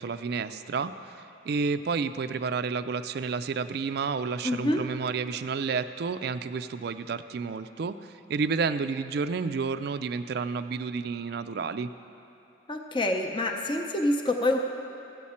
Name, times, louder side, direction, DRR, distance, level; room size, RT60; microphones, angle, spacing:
voice 1, 0.0-8.0 8.3-11.9, right 5 dB, 55° right, 11 dB, 0.3 m, -30 dB
voice 2, 4.4-4.8 12.7-14.6, left 1 dB, 25° left, 3 dB, 0.6 m, -26 dB
14.0 x 8.5 x 4.3 m, 2.9 s
head